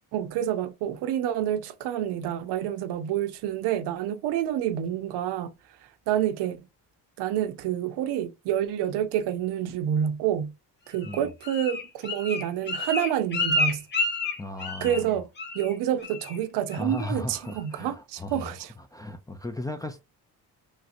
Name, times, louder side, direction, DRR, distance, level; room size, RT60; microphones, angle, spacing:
voice 1, 0.1-6.7 7.2-10.6 10.9-13.9 14.8-15.3 15.5-18.7, right 10 dB, 75° right, 0.6 m, -28 dB
Bird, 11.0-15.1 15.4-15.7 16.0-16.4 16.7-17.1 17.5-17.6, left 2 dB, 25° left, 0.7 m, -30 dB
voice 2, 14.4-15.2 16.8-18.6 18.9-20.0, left 2 dB, 10° left, 0.4 m, -36 dB
3.2 x 2.8 x 2.5 m
cardioid pair, 85°, 40 cm